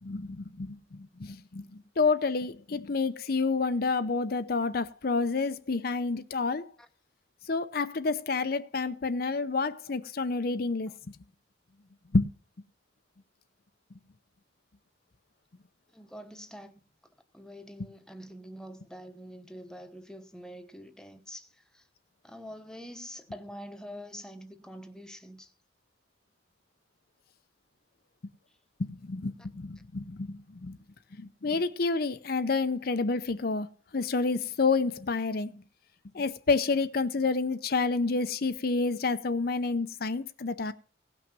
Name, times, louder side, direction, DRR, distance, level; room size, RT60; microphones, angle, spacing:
voice 1, 0.0-1.6 2.0-6.7 7.5-11.2 12.1-12.3 17.8-17.9 28.8-30.8 31.2-33.7 33.9-35.6 36.1-40.7, left 4 dB, 50° left, 0.6 m, -29 dB
voice 2, 15.9-16.8 17.3-21.9 22.2-25.5 29.4-29.5, equal, 5° left, 1.0 m, -45 dB
17.0 x 6.1 x 6.0 m
head